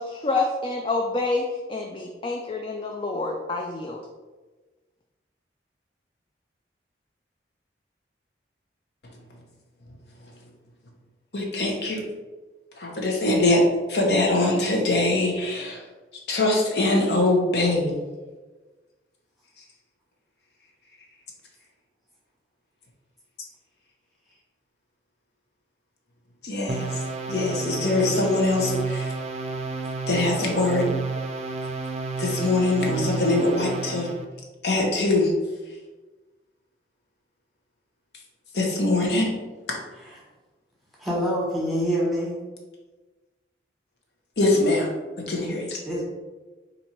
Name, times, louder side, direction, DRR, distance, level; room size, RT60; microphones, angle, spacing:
voice 1, 0.0-4.0, left 3 dB, 30° left, 1 dB, 0.3 m, -28 dB
voice 2, 11.3-12.0 12.8-13.6 13.9-15.8 16.3-18.0 26.4-26.9 27.3-29.0 30.1-30.8 32.2-34.1 34.6-35.3 38.5-39.3 44.4-44.9 45.3-45.8, left 2 dB, 70° left, -1 dB, 0.9 m, -22 dB
sound 1, 26.7-34.2, right 4 dB, 35° right, 0.4 m, -30 dB
voice 3, 41.0-42.4 45.8-46.0, equal, ahead, -6 dB, 1.3 m, -26 dB
4.2 x 2.6 x 4.4 m, 1.2 s
head